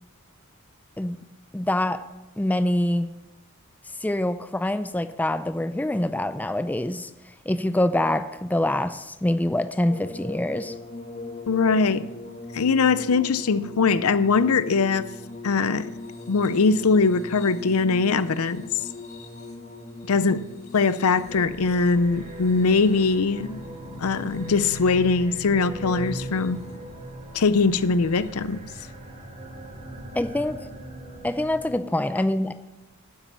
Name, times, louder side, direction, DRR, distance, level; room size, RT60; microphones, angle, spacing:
voice 1, 1.5-2.0 2.4-3.1 4.0-7.1 7.5-10.7 30.1-30.6 31.2-32.5, left 1 dB, 5° left, 10 dB, 0.4 m, -25 dB
sound 1, 9.9-25.1 26.0-26.7 28.1-28.3, left 2 dB, 30° left, 1.9 m, -40 dB
voice 2, 11.5-12.1 12.5-15.1 15.4-15.9 16.3-18.6 20.1-20.4 20.7-23.6 24.0-26.6 27.3-28.6, left 4 dB, 75° left, 14 dB, 0.6 m, -21 dB
sound 2, 21.1-31.9, right 1 dB, 35° right, 4.1 m, -39 dB
9.2 x 8.3 x 6.9 m, 1.0 s
head